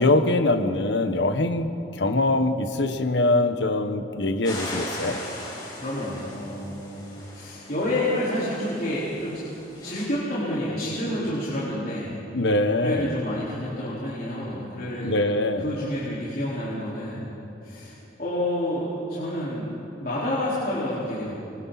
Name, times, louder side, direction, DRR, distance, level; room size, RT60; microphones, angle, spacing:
voice 1, 0.0-5.2 12.3-13.1 15.0-15.7, left 2 dB, 80° left, 1.4 m, -23 dB
sound 1, 4.4-10.0, left 1 dB, 25° left, 6.0 m, -39 dB
voice 2, 5.7-7.0 7.3-9.4 9.8-12.2 12.8-15.2 15.6-17.3 17.6-17.9 18.2-19.7 20.0-21.3, left 1 dB, 50° left, 4.8 m, -29 dB
25.0 x 24.5 x 4.3 m
head